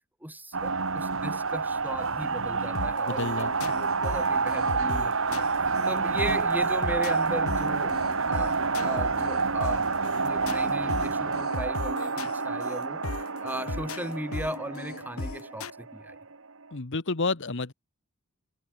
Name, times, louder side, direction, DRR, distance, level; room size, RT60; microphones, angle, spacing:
voice 1, 0.2-5.5 5.9-8.0 8.3-8.6 8.8-9.9 10.2-13.1 13.4-16.2, right 1 dB, 10° right, 4.0 m, -37 dB
sound 1, 0.5-16.3, right 4 dB, 65° right, 2.0 m, -28 dB
sound 2, 2.7-15.7, left 3 dB, 80° left, 1.2 m, -38 dB
voice 2, 3.1-3.7 16.7-17.7, left 3 dB, 60° left, 1.3 m, -30 dB
head